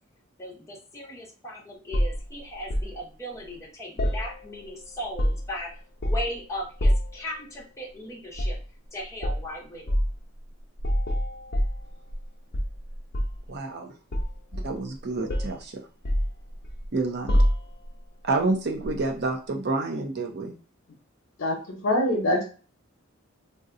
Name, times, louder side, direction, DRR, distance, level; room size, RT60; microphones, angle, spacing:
voice 1, 0.4-5.7 6.0-8.6 8.9-10.0, equal, 15° left, -3 dB, 0.8 m, -37 dB
sound 1, 1.9-2.9 4.0-4.7 5.0-5.6 6.0-6.4 6.8-7.2 8.3-8.6 9.2-9.4 9.9-10.1 10.8-12.2 12.5-13.5 14.1-15.0 15.3-15.6 16.0-16.9 17.3-17.9 18.8-19.0, equal, 50° left, 0.7 m, -26 dB
voice 2, 13.5-13.9 14.5-15.8 16.9-17.4 18.2-20.5, right 3 dB, 55° right, 3 dB, 0.6 m, -28 dB
voice 3, 21.4-22.4, left 1 dB, 80° left, -1 dB, 0.7 m, -24 dB
2.7 x 2.2 x 3.7 m, 0.37 s
head